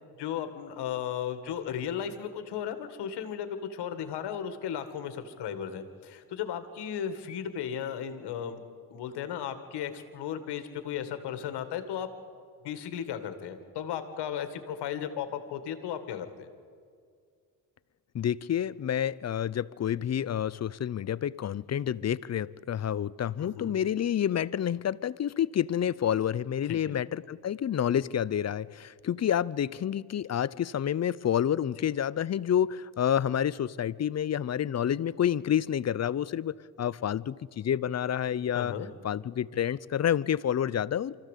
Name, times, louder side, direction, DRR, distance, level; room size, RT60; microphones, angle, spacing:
voice 1, 0.2-8.6 8.9-12.1 12.6-16.5 23.4-23.8 26.7-27.0 38.5-38.9, left 9 dB, 80° left, 9 dB, 1.9 m, -35 dB
voice 2, 18.1-38.7 39.0-41.2, left 9 dB, 40° left, 20 dB, 0.6 m, -29 dB
24.5 x 15.0 x 8.3 m, 2.2 s
supercardioid pair, 65°, 40 cm